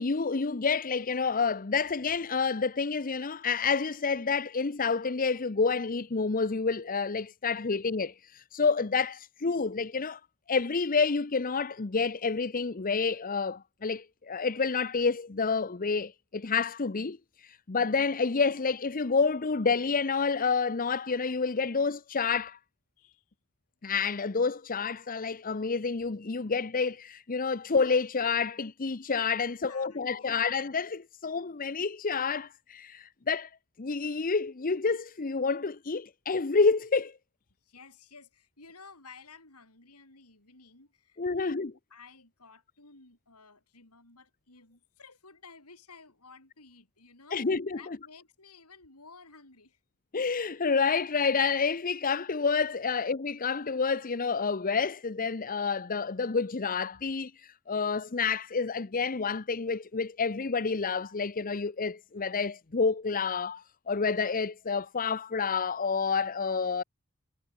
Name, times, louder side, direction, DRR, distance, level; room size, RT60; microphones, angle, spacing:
voice 1, 0.0-10.2 10.5-17.2 17.4-22.6 23.8-33.5 33.8-37.1 41.2-41.7 47.3-47.8 50.1-66.8, left 5 dB, 40° left, 0.7 m, -29 dB
voice 2, 29.5-30.3 37.6-41.6 41.9-49.8, left 4 dB, 90° left, 7.8 m, -54 dB
head